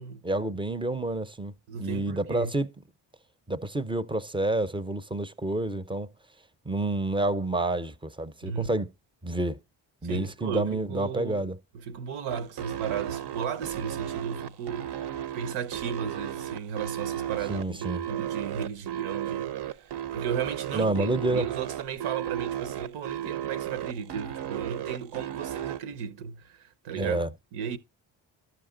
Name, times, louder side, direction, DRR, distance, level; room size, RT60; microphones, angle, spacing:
voice 1, 0.2-2.7 3.5-6.1 6.7-8.9 9.2-9.6 10.0-11.6 17.5-18.0 20.7-21.5 27.0-27.3, right 2 dB, 10° right, 0.6 m, -29 dB
voice 2, 1.7-2.5 8.4-8.7 10.0-11.5 11.7-27.8, right 7 dB, 80° right, 1.0 m, -35 dB
sound 1, 12.3-25.8, right 11 dB, 55° right, 0.7 m, -34 dB
12.0 x 5.9 x 3.8 m
supercardioid pair, 65°, 50 cm